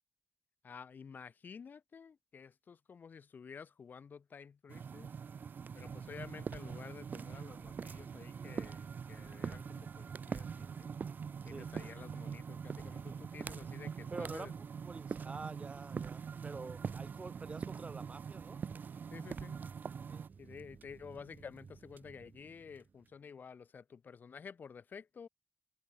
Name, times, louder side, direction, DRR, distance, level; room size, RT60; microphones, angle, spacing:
voice 1, 0.6-5.1 5.7-10.9 11.4-14.6 19.1-19.6 20.4-25.3, left 6 dB, 75° left, 2.9 m, -51 dB
sound 1, 4.7-20.3, right 6 dB, 85° right, 1.8 m, -46 dB
sound 2, 5.6-23.1, right 6 dB, 65° right, 1.5 m, -47 dB
voice 2, 14.1-14.5 14.8-18.6 20.1-20.2, right 4 dB, 40° right, 3.7 m, -47 dB
wide cardioid pair, 130°, 3 cm